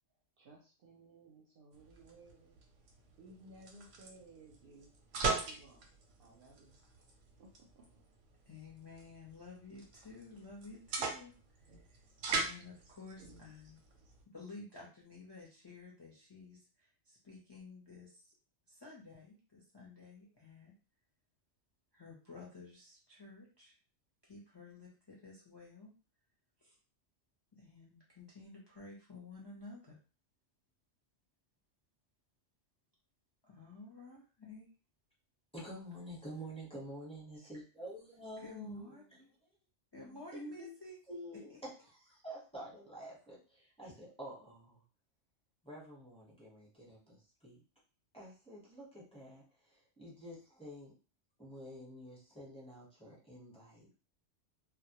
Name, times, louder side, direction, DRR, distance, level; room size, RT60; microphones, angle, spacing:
voice 1, 0.4-2.6 3.2-4.9 5.2-5.8 6.2-7.0 7.4-7.9, right 2 dB, 60° right, -2 dB, 0.6 m, -58 dB
sound 1, 1.7-14.2, right 4 dB, 90° right, 0.9 m, -42 dB
voice 2, 8.5-12.0 12.3-13.8 14.3-18.3 18.7-20.7 21.9-23.8 24.2-25.9 26.6-26.8 27.5-30.0 33.4-34.7 38.4-39.3 39.9-41.0 41.5-41.6, left 3 dB, 35° left, -5 dB, 0.4 m, -52 dB
voice 3, 35.5-38.9 40.3-40.7 41.1-41.5 41.9-44.8 45.6-47.6 48.1-50.9 51.4-54.0, equal, 5° left, -6 dB, 0.7 m, -49 dB
2.1 x 2.1 x 2.8 m, 0.36 s
omnidirectional pair, 1.2 m